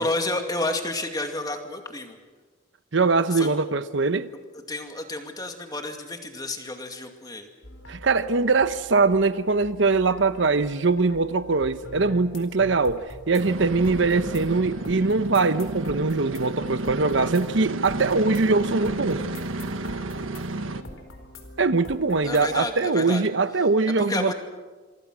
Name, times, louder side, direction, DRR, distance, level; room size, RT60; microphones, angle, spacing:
voice 1, 0.0-2.2 3.3-3.5 4.7-7.5 22.2-23.2 24.1-24.3, left 2 dB, 20° left, 2.3 m, -30 dB
voice 2, 2.9-4.3 7.9-19.2 21.6-24.3, right 3 dB, 65° right, 0.9 m, -22 dB
sound 1, 7.6-22.6, left 1 dB, 80° left, 4.3 m, -44 dB
sound 2, 13.4-20.8, right 2 dB, 85° right, 1.4 m, -31 dB
27.0 x 25.0 x 6.3 m
head